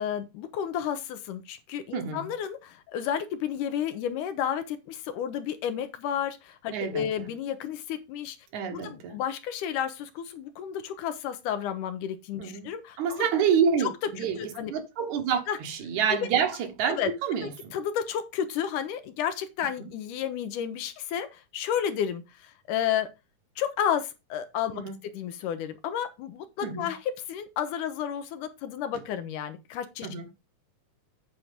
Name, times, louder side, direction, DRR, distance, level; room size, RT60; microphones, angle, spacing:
voice 1, 0.0-8.4 8.7-13.3 13.8-13.9 14.2-14.7 15.5-15.6 16.1-16.3 16.9-17.1 17.4-23.1 23.6-24.8 25.1-30.1, left 9 dB, 75° left, 2.3 m, -32 dB
voice 2, 1.9-2.3 6.7-7.1 8.5-9.2 12.4-12.7 13.0-17.7 24.8-24.9 26.6-26.9 30.0-30.2, right 7 dB, 70° right, 2.4 m, -28 dB
8.5 x 4.4 x 5.1 m
omnidirectional pair, 3.8 m